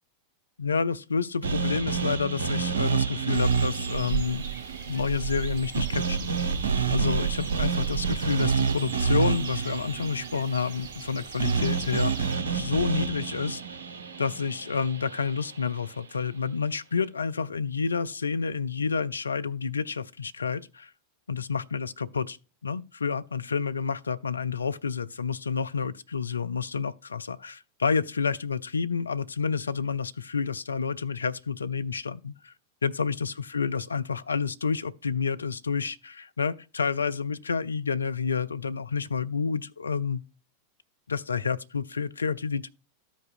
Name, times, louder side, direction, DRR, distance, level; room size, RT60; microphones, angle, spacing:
voice 1, 0.6-4.5 4.9-6.4 6.9-13.6 14.2-20.9 21.3-22.4 22.6-32.5 32.8-40.2 41.1-42.7, left 5 dB, 75° left, 0.3 m, -29 dB
sound 1, 1.4-15.6, right 5 dB, 70° right, 0.6 m, -29 dB
sound 2, 3.3-12.4, right 11 dB, 35° right, 2.6 m, -36 dB
13.0 x 5.2 x 2.5 m
figure-of-eight pair, 90°, 0 cm